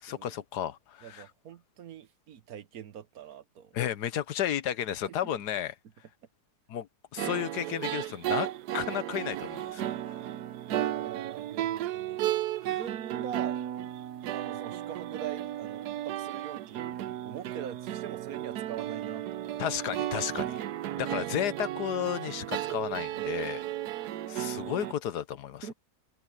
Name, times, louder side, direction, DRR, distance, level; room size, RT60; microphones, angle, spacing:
voice 1, 0.0-1.2 3.7-5.7 6.7-6.9 7.1-8.5 8.7-9.9 12.7-12.8 19.6-20.6 21.0-23.6 24.3-25.7, left 10 dB, 85° left, 1.5 m, -33 dB
voice 2, 1.0-3.8 5.1-5.3 10.7-12.2 12.6-13.6 14.3-17.0 17.2-19.7 23.2-23.4 25.6-25.7, right 9 dB, 65° right, 1.4 m, -43 dB
sound 1, 7.2-24.9, right 12 dB, 85° right, 1.2 m, -34 dB
omnidirectional pair, 1.7 m